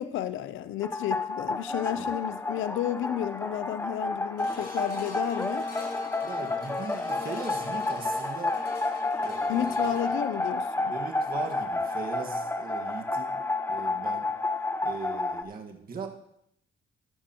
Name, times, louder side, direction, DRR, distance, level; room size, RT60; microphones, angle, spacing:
voice 1, 0.0-5.7 9.5-10.9, left 11 dB, 85° left, 13 dB, 0.6 m, -32 dB
sound 1, 0.8-15.4, left 2 dB, 10° left, 0.8 m, -30 dB
sound 2, 4.4-14.8 15.3-15.4, left 2 dB, 55° left, 4.7 m, -45 dB
voice 2, 6.2-8.9 9.2-10.2 10.9-13.4 13.7-14.3 14.8-16.1, right 4 dB, 45° right, 2 dB, 1.7 m, -40 dB
15.0 x 11.0 x 3.0 m, 0.76 s
cardioid pair, 90°, 20 cm